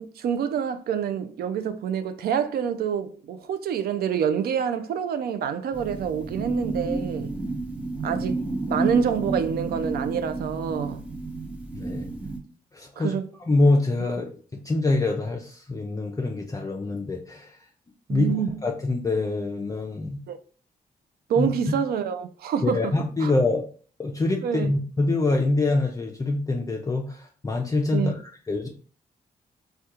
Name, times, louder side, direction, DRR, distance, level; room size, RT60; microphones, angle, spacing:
voice 1, 0.0-7.3 8.0-8.4 8.7-11.0 13.0-13.3 18.1-18.6 20.3-20.4 21.3-22.9 23.2-23.3 24.4-24.7 27.9-28.1, right 8 dB, 75° right, 0.4 m, -27 dB
sound 1, 5.7-12.4, right 3 dB, 10° right, 0.7 m, -31 dB
voice 2, 11.7-12.1 12.7-13.1 13.5-17.6 18.1-18.3 18.6-20.2 21.4-21.8 22.6-23.6 24.0-28.7, left 2 dB, 20° left, 0.4 m, -25 dB
3.5 x 2.2 x 2.8 m
supercardioid pair, 60°, 16 cm